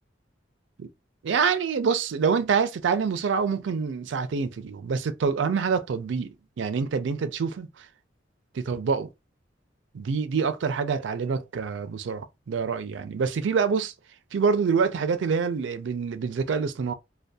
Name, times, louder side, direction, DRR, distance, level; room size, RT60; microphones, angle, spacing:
voice 1, 1.2-7.9 8.5-9.1 9.9-13.9 14.3-16.9, right 5 dB, 75° right, 0.4 m, -26 dB
2.6 x 2.2 x 2.2 m
head